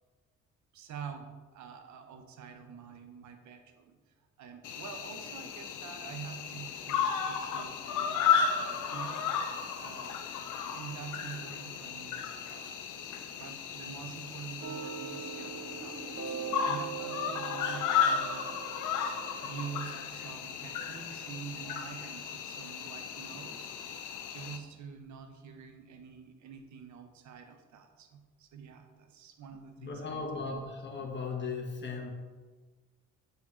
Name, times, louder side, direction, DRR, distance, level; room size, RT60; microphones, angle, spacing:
voice 1, 0.7-4.0 4.4-9.4 9.7-18.6 19.4-23.7 24.3-30.2 30.5-30.6, right 7 dB, 70° right, 6 dB, 0.8 m, -47 dB
Cricket, 4.6-24.6, left 7 dB, 80° left, 0.7 m, -34 dB
sound 1, 14.6-20.1, right 8 dB, 45° right, 0.6 m, -42 dB
sound 2, 15.6-16.9 17.5-18.4, right 1 dB, 5° right, 0.9 m, -52 dB
voice 2, 29.8-32.1, left 4 dB, 35° left, 1 dB, 1.3 m, -37 dB
6.8 x 3.7 x 4.3 m, 1.4 s
cardioid pair, 90°, 30 cm